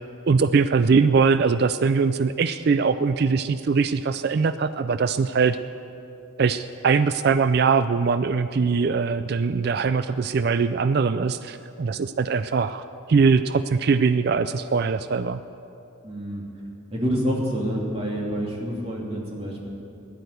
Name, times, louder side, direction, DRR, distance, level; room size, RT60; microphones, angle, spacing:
voice 1, 0.3-5.6 6.4-15.4, right 5 dB, 50° right, 12 dB, 0.3 m, -21 dB
voice 2, 16.0-16.4 16.9-19.7, equal, 30° right, -3 dB, 2.7 m, -27 dB
15.5 x 11.5 x 8.0 m, 2.8 s
head